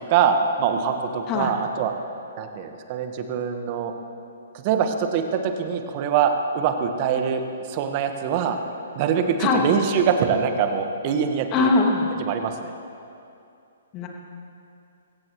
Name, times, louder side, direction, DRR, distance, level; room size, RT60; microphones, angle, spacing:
voice 1, 0.1-1.9 2.4-3.9 4.5-7.4 7.7-8.6 8.9-11.7 12.2-12.7, right 7 dB, 40° right, 6 dB, 1.5 m, -23 dB
voice 2, 11.5-12.1 13.9-14.1, left 3 dB, 30° left, 1 dB, 2.3 m, -21 dB
23.0 x 16.5 x 3.2 m, 2.6 s
hypercardioid pair, 130°, 0 cm